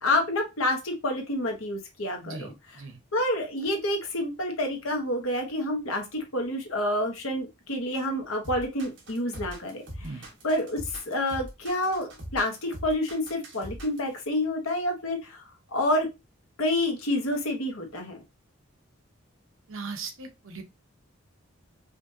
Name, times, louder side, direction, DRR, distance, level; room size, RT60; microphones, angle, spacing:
voice 1, 0.0-2.8 3.1-10.1 10.4-15.4 15.7-16.1 16.6-18.2, left 1 dB, 85° left, 3 dB, 1.2 m, -28 dB
voice 2, 2.2-3.0 10.0-10.3 19.7-20.6, right 4 dB, 75° right, 6 dB, 0.8 m, -39 dB
sound 1, 8.4-14.1, equal, 60° right, 1.3 m, -41 dB
5.0 x 2.6 x 2.7 m, 0.24 s
head